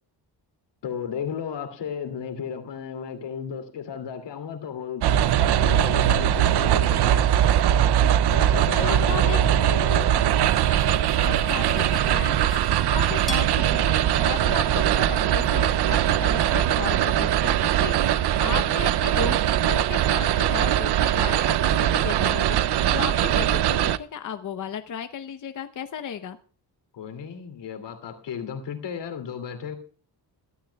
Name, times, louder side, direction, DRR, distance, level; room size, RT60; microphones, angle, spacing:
voice 1, 0.8-5.0 5.6-7.2 8.3-10.1 26.9-29.8, left 7 dB, 90° left, 2.6 m, -34 dB
sound 1, 5.0-24.0, right 11 dB, 70° right, 0.6 m, -21 dB
voice 2, 8.8-9.4 11.2-26.4, left 8 dB, 45° left, 0.8 m, -35 dB
Cutlery silverware, 10.3-13.5, equal, ahead, 3.9 m, -41 dB
sound 2, 10.5-16.3, left 6 dB, 20° left, 2.8 m, -46 dB
22.0 x 13.0 x 2.3 m
wide cardioid pair, 165°, 41 cm